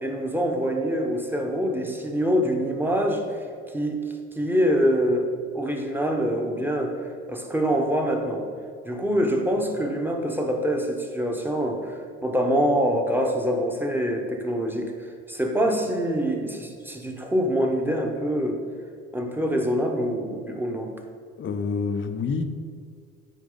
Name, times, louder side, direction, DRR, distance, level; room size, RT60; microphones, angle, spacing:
voice 1, 0.0-3.4 3.7-4.0 4.3-5.3 5.5-8.4 8.8-18.6 19.1-20.9, equal, 5° right, 2 dB, 1.2 m, -25 dB
voice 2, 21.4-22.4, left 5 dB, 35° left, 8 dB, 0.7 m, -27 dB
9.2 x 4.9 x 4.0 m, 2.2 s
hypercardioid pair, 60°, 36 cm